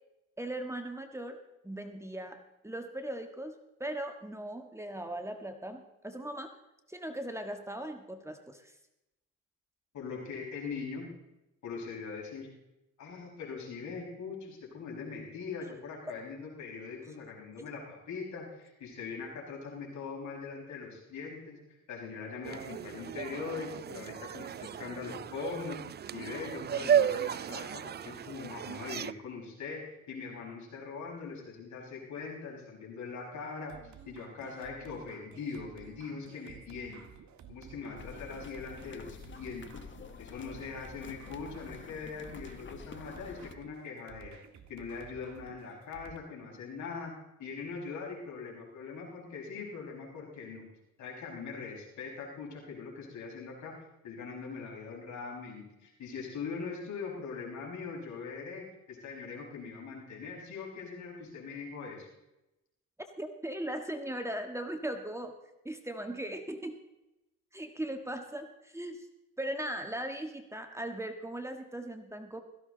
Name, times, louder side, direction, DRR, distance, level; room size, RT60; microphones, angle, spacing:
voice 1, 0.4-3.5 3.8-6.5 6.9-8.7 63.2-65.3 65.6-66.8 67.5-69.1 69.4-72.4, right 1 dB, 10° right, 5 dB, 1.5 m, -39 dB
voice 2, 9.9-11.1 11.6-12.5 13.0-21.6 21.9-25.8 26.1-33.8 34.1-37.0 37.5-39.9 40.2-44.4 44.7-47.1 47.4-50.6 51.0-53.8 54.0-62.1, left 5 dB, 70° left, -1 dB, 5.7 m, -41 dB
sound 1, 22.4-29.1, right 9 dB, 35° right, 0.4 m, -33 dB
sound 2, 33.7-46.2, right 8 dB, 70° right, 1.8 m, -53 dB
sound 3, 37.9-43.5, left 6 dB, 40° left, 1.2 m, -49 dB
17.0 x 15.0 x 4.0 m, 0.91 s
cardioid pair, 90°, 30 cm